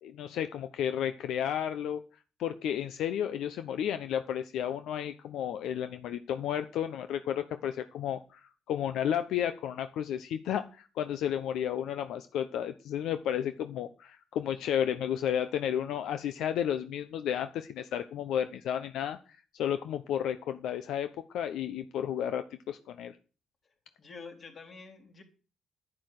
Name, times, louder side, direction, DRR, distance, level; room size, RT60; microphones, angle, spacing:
voice 1, 0.0-2.0 2.4-19.2 19.5-21.1 21.3-23.2, left 9 dB, 80° left, 10 dB, 0.9 m, -32 dB
voice 2, 24.0-25.2, left 4 dB, 45° left, 3 dB, 4.2 m, -47 dB
11.0 x 10.0 x 6.7 m, 0.35 s
cardioid pair, 90°, 0 cm